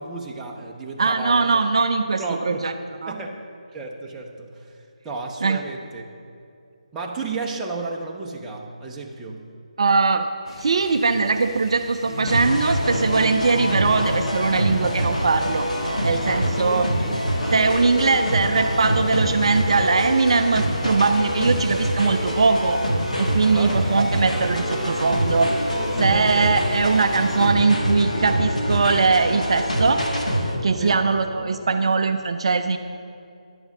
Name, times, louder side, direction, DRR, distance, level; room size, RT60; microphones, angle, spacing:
voice 1, 0.0-1.6 2.2-2.6 3.1-3.3 3.7-4.7 5.0-6.0 6.9-9.4 16.7-17.2 23.4-23.8 26.1-26.6 30.8-31.0, right 3 dB, 10° right, -1 dB, 0.7 m, -32 dB
voice 2, 1.0-2.7 3.0-3.1 5.4-5.6 9.8-10.3 10.6-15.7 16.0-16.9 17.5-22.8 23.2-25.5 26.0-30.0 30.6-32.8, right 4 dB, 50° right, 8 dB, 0.4 m, -21 dB
sound 1, 10.5-27.5, left 1 dB, 40° left, 1.3 m, -42 dB
sound 2, 12.0-31.9, left 1 dB, 60° left, 2.3 m, -33 dB
sound 3, 12.3-30.5, equal, 85° left, 1.7 m, -25 dB
10.5 x 7.0 x 5.3 m, 2.5 s
figure-of-eight pair, 155°, 4 cm